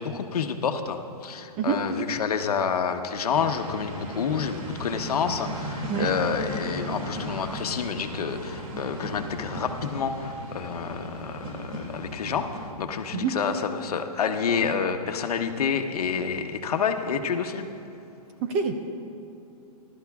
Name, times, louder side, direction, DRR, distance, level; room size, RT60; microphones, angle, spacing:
voice 1, 0.0-17.6, left 6 dB, 70° left, 6 dB, 1.0 m, -28 dB
sound 1, 3.3-12.7, equal, 60° right, 2.4 m, -36 dB
voice 2, 18.4-18.9, right 6 dB, 20° right, 5 dB, 0.5 m, -26 dB
30.0 x 13.0 x 2.4 m, 2.8 s
hypercardioid pair, 165°, 20 cm